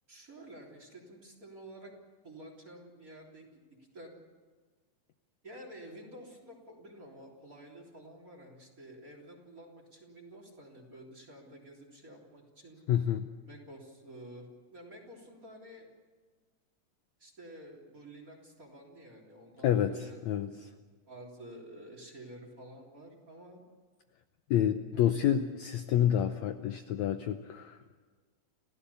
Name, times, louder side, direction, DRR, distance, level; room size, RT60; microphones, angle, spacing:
voice 1, 0.1-1.9 2.2-4.3 5.4-12.8 13.5-15.9 17.2-20.7 21.1-23.6 24.9-25.2, right 1 dB, 25° right, 1 dB, 3.5 m, -50 dB
voice 2, 12.9-13.3 19.6-20.7 24.5-28.0, left 10 dB, 75° left, 8 dB, 1.7 m, -29 dB
30.0 x 15.5 x 7.0 m, 1.5 s
omnidirectional pair, 4.0 m